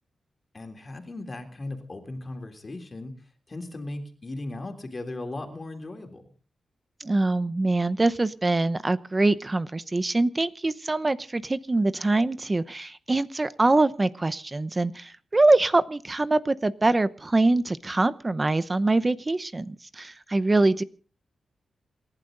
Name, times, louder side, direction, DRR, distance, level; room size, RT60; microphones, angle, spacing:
voice 1, 0.5-3.1 3.5-6.2, left 2 dB, 35° left, 5 dB, 3.5 m, -37 dB
voice 2, 7.0-20.8, right 2 dB, 25° right, 14 dB, 0.8 m, -24 dB
27.5 x 11.5 x 3.9 m, 0.40 s
cardioid pair, 80°, 0 cm